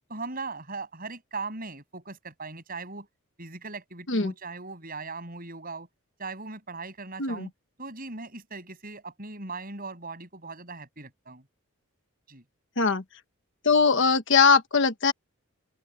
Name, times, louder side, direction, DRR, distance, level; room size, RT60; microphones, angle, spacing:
voice 1, 0.1-3.1 3.4-5.9 6.2-7.5 7.8-11.4 12.3-12.4, right 3 dB, 40° right, 7.6 m, -39 dB
voice 2, 13.6-15.1, left 5 dB, 60° left, 1.4 m, -21 dB
open air
head